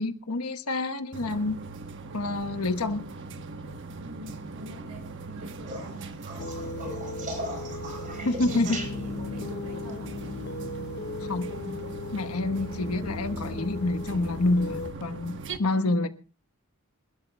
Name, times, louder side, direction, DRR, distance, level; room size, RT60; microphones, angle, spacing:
voice 1, 0.0-1.5 2.1-3.0 8.2-8.8 11.2-11.5 12.1-16.1, left 2 dB, 80° left, 1.2 m, -27 dB
sound 1, 1.1-15.6, right 3 dB, 55° right, 1.1 m, -40 dB
voice 2, 4.0-6.1 6.9-7.1 7.6-7.8 8.1-10.1 12.4-12.9 15.7-16.0, right 1 dB, 90° right, 5.3 m, -43 dB
sound 2, 5.7-9.4 11.5-12.0 13.7-13.8, right 1 dB, 35° right, 4.2 m, -39 dB
sound 3, 6.4-14.9, left 3 dB, 50° left, 0.8 m, -37 dB
27.5 x 12.5 x 2.3 m
head